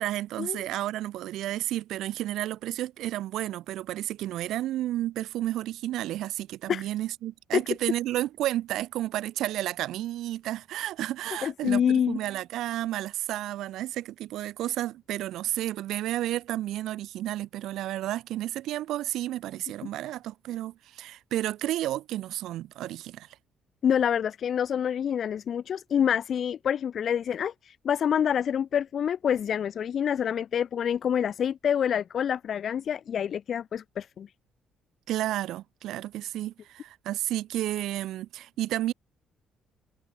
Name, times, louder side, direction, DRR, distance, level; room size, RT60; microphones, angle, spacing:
voice 1, 0.0-23.3 35.1-38.9, right 14 dB, 80° right, 3.3 m, -31 dB
voice 2, 11.4-12.2 23.8-34.3, left 8 dB, 45° left, 0.6 m, -27 dB
cardioid pair, 160°, 0 cm